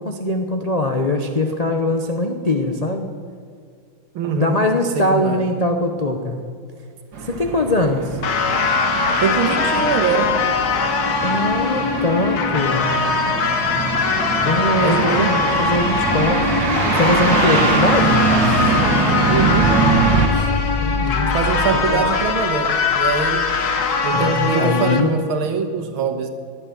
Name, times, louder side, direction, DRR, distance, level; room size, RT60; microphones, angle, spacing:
voice 1, 0.0-3.1 4.4-6.4 7.2-8.2 11.2-12.9 14.4-16.4 17.0-18.3 20.8-21.3 21.7-22.1 24.1-25.1, left 2 dB, 35° left, 3 dB, 0.6 m, -21 dB
voice 2, 4.1-4.7 4.9-5.4 9.2-10.4 14.8-15.4 19.3-19.8 20.3-20.5 21.3-23.5 24.0-26.3, right 6 dB, 85° right, 6 dB, 2.1 m, -23 dB
sound 1, 7.1-20.3, right 4 dB, 65° right, 2.2 m, -22 dB
sound 2, 8.2-25.0, left 4 dB, 55° left, 1.6 m, -21 dB
Boom, 18.4-24.3, left 3 dB, 80° left, 5.5 m, -28 dB
18.0 x 11.0 x 7.1 m, 2.3 s
omnidirectional pair, 2.2 m